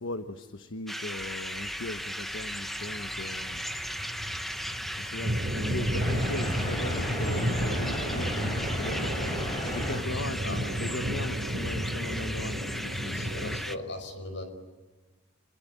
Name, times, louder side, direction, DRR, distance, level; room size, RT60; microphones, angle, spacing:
voice 1, 0.0-3.7 5.0-13.6, left 2 dB, 85° left, 8 dB, 1.2 m, -38 dB
sound 1, 0.9-13.8, equal, ahead, 0.9 m, -37 dB
sound 2, 1.2-10.4, equal, 20° left, 4.9 m, -39 dB
sound 3, 2.9-13.6, equal, 50° right, 2.8 m, -32 dB
voice 2, 10.4-10.7 13.0-14.4, left 2 dB, 70° left, 7 dB, 5.7 m, -39 dB
29.0 x 22.0 x 9.2 m, 1.3 s
head